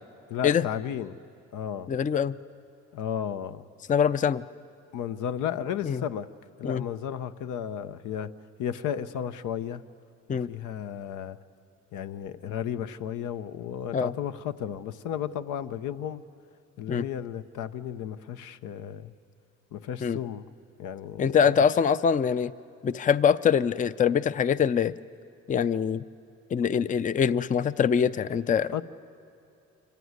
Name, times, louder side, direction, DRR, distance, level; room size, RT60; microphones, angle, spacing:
voice 1, 0.3-1.2 1.5-1.9 2.9-3.6 4.9-6.3 6.6-8.3 8.6-9.8 10.3-11.4 11.9-16.2 16.8-19.1 19.7-20.5 20.8-21.6 28.7-28.8, left 9 dB, 80° left, 11 dB, 0.8 m, -33 dB
voice 2, 1.9-2.4 3.9-4.4 5.8-6.0 6.6-6.8 10.3-10.5 13.9-14.1 16.9-17.0 20.0-20.2 21.2-22.5 22.8-24.9 25.5-26.0 26.5-28.7, left 7 dB, 25° left, 15 dB, 0.4 m, -24 dB
25.5 x 16.0 x 9.5 m, 2.7 s
cardioid pair, 90°, 30 cm